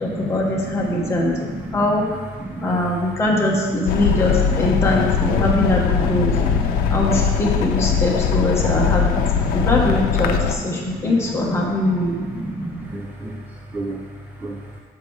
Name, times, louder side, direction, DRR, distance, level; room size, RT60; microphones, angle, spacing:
voice 1, 0.0-1.4 1.7-2.2 2.6-6.3 6.9-9.2 9.5-12.2, left 2 dB, 15° left, -2 dB, 1.2 m, -22 dB
sound 1, 3.9-10.6, left 7 dB, 90° left, 0.6 m, -21 dB
voice 2, 12.4-13.4 13.7-14.0 14.4-14.6, right 2 dB, 10° right, 0 dB, 0.4 m, -30 dB
6.8 x 5.3 x 4.6 m, 1.5 s
cardioid pair, 165°, 15 cm